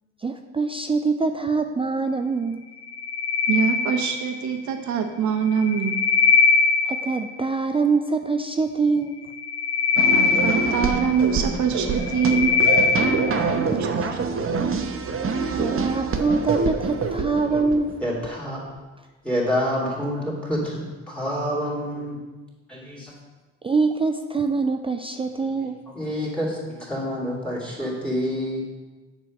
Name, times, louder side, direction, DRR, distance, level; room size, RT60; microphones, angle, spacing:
voice 1, 0.2-2.7 6.9-9.2 13.7-14.1 15.6-17.9 23.6-25.8, right 4 dB, 20° right, 6 dB, 0.4 m, -24 dB
sound 1, 2.8-4.5 5.4-7.3 9.2-11.3 11.8-13.4, left 5 dB, 45° left, 1.1 m, -21 dB
voice 2, 3.5-6.0 10.1-12.5 13.7-13.9, right 7 dB, 70° right, 5 dB, 1.1 m, -24 dB
sound 2, 10.0-18.3, right 4 dB, 45° right, 0.9 m, -26 dB
voice 3, 18.0-18.6 19.2-22.2 22.7-23.1 25.9-28.6, equal, 5° left, -4 dB, 2.6 m, -27 dB
7.5 x 4.5 x 6.3 m, 1.2 s
cardioid pair, 90°, 30 cm